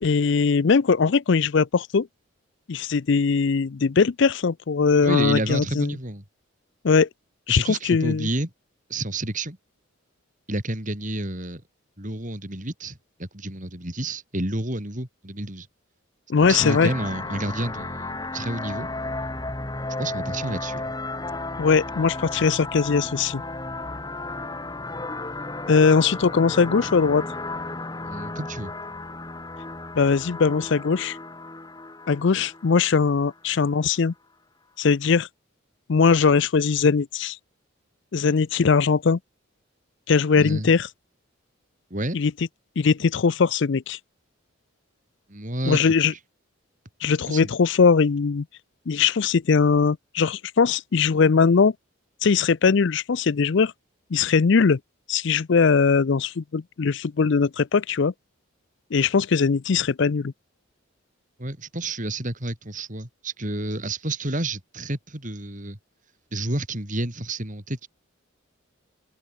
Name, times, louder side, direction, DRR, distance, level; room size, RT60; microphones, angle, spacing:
voice 1, 0.0-2.1 2.7-5.9 6.8-7.1 7.5-8.3 16.3-16.9 21.6-23.4 25.7-27.3 30.0-31.2 32.1-34.1 34.8-35.3 35.9-37.4 38.1-39.2 40.1-40.9 42.1-42.3 42.8-44.0 45.7-46.1 47.0-48.4 48.9-51.7 52.2-53.7 54.1-54.8 55.1-58.1 58.9-60.3, left 5 dB, 60° left, 0.5 m, -20 dB
voice 2, 5.0-6.2 7.5-8.5 8.9-9.6 10.5-11.6 12.0-15.7 16.5-18.9 20.0-20.9 28.0-28.7 40.3-40.7 41.9-42.2 45.3-45.9 47.2-47.5 61.4-65.8 66.3-67.9, right 2 dB, 35° right, 4.5 m, -30 dB
sound 1, 16.4-33.3, left 2 dB, 20° left, 1.9 m, -34 dB
open air
head